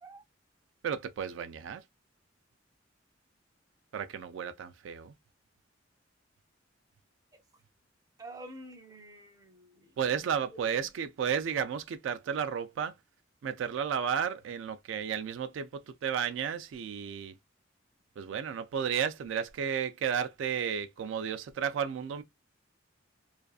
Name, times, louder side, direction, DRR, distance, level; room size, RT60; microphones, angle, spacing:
voice 1, 0.8-1.8 3.9-5.1 10.0-12.9 13.4-17.3 18.2-22.2, right 7 dB, 75° right, 0.3 m, -33 dB
voice 2, 8.2-10.2, right 1 dB, 20° right, 0.5 m, -48 dB
2.4 x 2.3 x 2.3 m
head